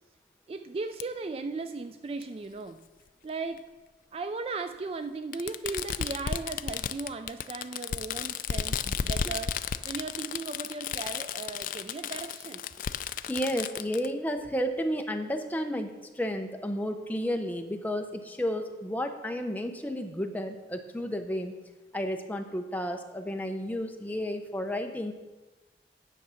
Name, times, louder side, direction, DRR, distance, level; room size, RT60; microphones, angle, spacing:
voice 1, 0.5-2.8 3.2-3.7 4.1-9.6 9.8-12.6, right 3 dB, 30° right, 9 dB, 0.3 m, -37 dB
Fireworks, 1.0-1.1 2.2-2.3 3.6-3.7 5.3-14.1, left 7 dB, 50° left, 0.3 m, -33 dB
voice 2, 13.3-21.5 21.9-25.1, equal, 10° left, 5 dB, 0.7 m, -32 dB
9.3 x 7.2 x 5.7 m, 1.2 s
head